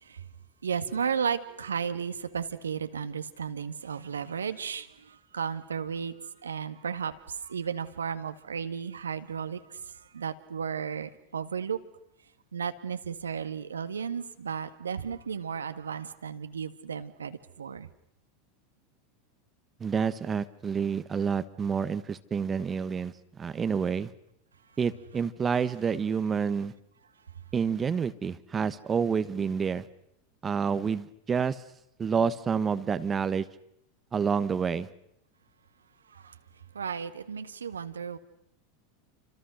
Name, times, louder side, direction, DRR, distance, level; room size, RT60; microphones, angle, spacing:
voice 1, 0.6-6.1 6.4-9.8 10.1-11.8 12.5-17.9 36.1-36.4 36.7-38.2, right 7 dB, 80° right, 1.7 m, -34 dB
voice 2, 19.8-24.1 24.8-26.7 27.5-29.8 30.4-31.6 32.0-33.4 34.1-34.9, right 6 dB, 25° right, 1.2 m, -28 dB
29.5 x 26.0 x 6.5 m
figure-of-eight pair, 85°, 0 cm